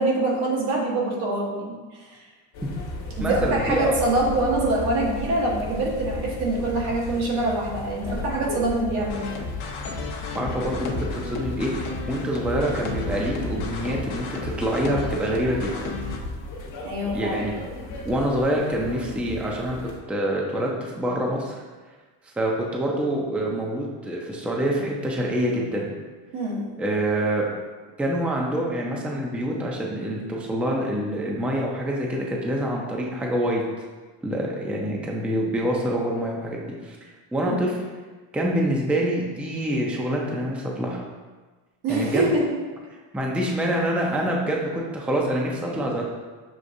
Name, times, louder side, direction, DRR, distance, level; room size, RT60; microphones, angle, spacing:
voice 1, 0.0-2.1 3.2-9.3 16.8-17.4 26.3-26.6 37.5-37.6 41.8-42.6, right 2 dB, 80° right, -3 dB, 1.3 m, -25 dB
sound 1, 2.5-20.0, left 2 dB, 60° left, 1.1 m, -35 dB
voice 2, 3.2-4.0 10.3-15.9 17.1-17.6 18.0-19.8 20.1-21.6 22.4-25.9 26.8-27.5 28.0-33.9 34.2-37.8 38.3-41.0 41.9-42.3 43.1-46.0, right 1 dB, 5° right, -1 dB, 0.4 m, -26 dB
sound 2, 9.1-16.2, left 3 dB, 75° left, 0.8 m, -33 dB
6.4 x 2.5 x 2.6 m, 1.3 s
supercardioid pair, 90°, 49 cm